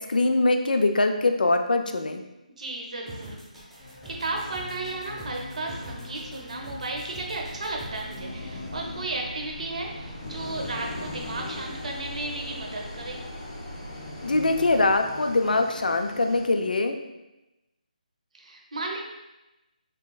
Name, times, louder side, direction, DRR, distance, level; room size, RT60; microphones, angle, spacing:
voice 1, 0.0-2.2 14.2-17.0, left 2 dB, 85° left, 6 dB, 0.4 m, -23 dB
voice 2, 2.6-3.4 3.8-13.2 18.3-19.0, right 2 dB, 55° right, 0 dB, 0.7 m, -34 dB
sound 1, 3.1-8.2, equal, 5° right, 0.8 m, -44 dB
sound 2, 3.8-16.5, left 2 dB, 20° left, 0.4 m, -41 dB
sound 3, 7.3-15.0, right 1 dB, 90° right, 0.4 m, -43 dB
3.4 x 2.9 x 2.3 m, 0.99 s
figure-of-eight pair, 165°, 4 cm